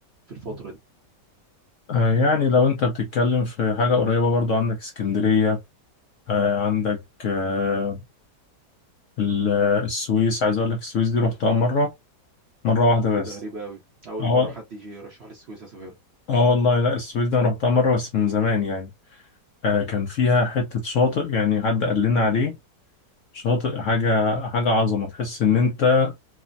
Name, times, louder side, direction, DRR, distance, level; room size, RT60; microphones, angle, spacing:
voice 1, 0.3-0.8 13.2-16.0, right 2 dB, 55° right, 0.8 m, -37 dB
voice 2, 1.9-5.6 6.3-8.0 9.2-11.9 12.6-13.3 14.2-14.5 16.3-18.9 19.6-22.6 23.3-26.1, left 4 dB, 65° left, 0.8 m, -21 dB
3.2 x 2.1 x 2.4 m
omnidirectional pair, 1.9 m